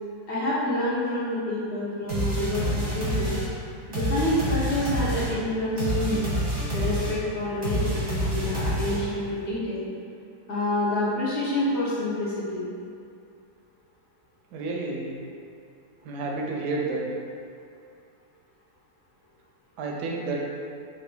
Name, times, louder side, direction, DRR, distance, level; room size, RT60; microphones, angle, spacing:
voice 1, 0.3-3.4 3.9-6.3 6.7-9.8 10.5-12.7, left 1 dB, 60° left, -8 dB, 0.7 m, -28 dB
sound 1, 2.1-9.3, equal, 35° right, 0.7 m, -28 dB
voice 2, 14.5-15.1 16.0-17.1 19.8-20.4, right 3 dB, 85° right, -1 dB, 1.2 m, -30 dB
3.2 x 2.4 x 3.7 m, 2.4 s
omnidirectional pair, 1.7 m